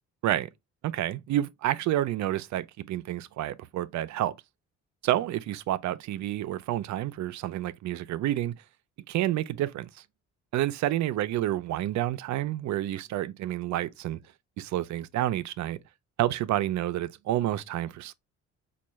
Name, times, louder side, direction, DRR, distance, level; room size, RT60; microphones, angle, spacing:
voice 1, 0.8-4.4 5.0-8.5 9.1-9.9 10.5-14.2 14.6-15.8 16.2-18.1, right 13 dB, 70° right, 0.5 m, -29 dB
4.4 x 2.3 x 3.0 m
cardioid pair, 90°, 30 cm